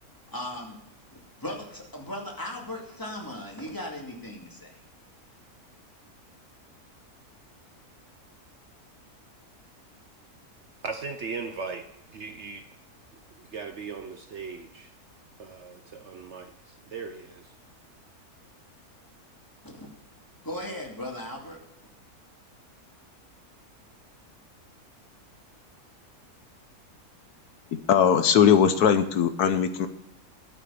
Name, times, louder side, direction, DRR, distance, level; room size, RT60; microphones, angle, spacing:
voice 1, 0.3-0.8 1.1-4.7 19.6-19.9 20.4-21.6, left 1 dB, 15° left, -1 dB, 2.4 m, -37 dB
voice 2, 10.8-12.7 13.3-14.9 15.4-17.4, right 4 dB, 55° right, 7 dB, 0.9 m, -38 dB
voice 3, 27.7-29.9, left 8 dB, 80° left, 10 dB, 1.4 m, -20 dB
13.0 x 6.1 x 7.0 m, 0.80 s
omnidirectional pair, 1.6 m